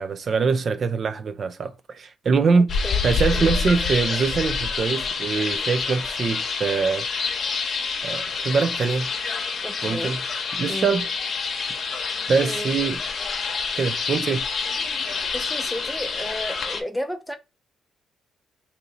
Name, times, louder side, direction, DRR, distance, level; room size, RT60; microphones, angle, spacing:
voice 1, 0.0-2.7 3.0-7.1 8.0-9.1 9.8-10.2 10.6-11.1 12.3-13.0 13.8-14.5, right 5 dB, 50° right, 0.3 m, -23 dB
voice 2, 2.5-3.1 3.3-3.5 9.6-10.1 10.7-10.9 12.4-12.7 15.3-17.4, equal, ahead, 0.6 m, -33 dB
sound 1, 2.7-16.8, left 5 dB, 50° left, 0.8 m, -27 dB
2.7 x 2.7 x 4.0 m
cardioid pair, 90°, 0 cm